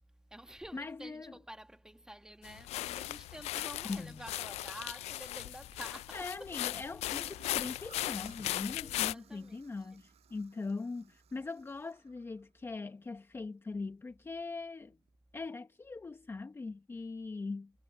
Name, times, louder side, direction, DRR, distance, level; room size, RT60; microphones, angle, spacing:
voice 1, 0.1-6.6 7.1-7.4 8.5-10.0, right 1 dB, 5° right, 1.9 m, -50 dB
voice 2, 0.7-1.4 3.8-4.2 6.1-15.0 15.3-17.7, left 3 dB, 20° left, 1.2 m, -41 dB
sound 1, 2.4-9.1, left 15 dB, 60° left, 0.4 m, -38 dB
Gurgling / Toilet flush, 7.2-12.9 14.9-15.2, right 11 dB, 55° right, 7.7 m, -62 dB
cardioid pair, 105°, 13 cm